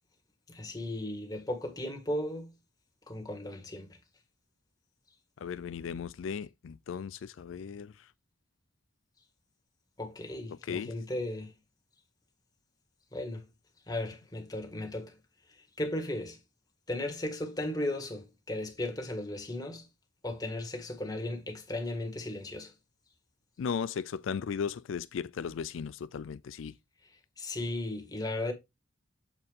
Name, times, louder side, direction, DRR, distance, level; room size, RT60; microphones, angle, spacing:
voice 1, 0.5-2.5 3.1-4.0 10.0-11.5 13.1-13.5 13.9-15.2 15.5-16.4 16.9-19.9 20.2-22.7 27.4-28.5, left 1 dB, 20° left, 1.8 m, -36 dB
voice 2, 5.4-8.1 10.7-10.9 23.6-26.7, left 6 dB, 85° left, 0.4 m, -36 dB
8.1 x 4.5 x 3.5 m
head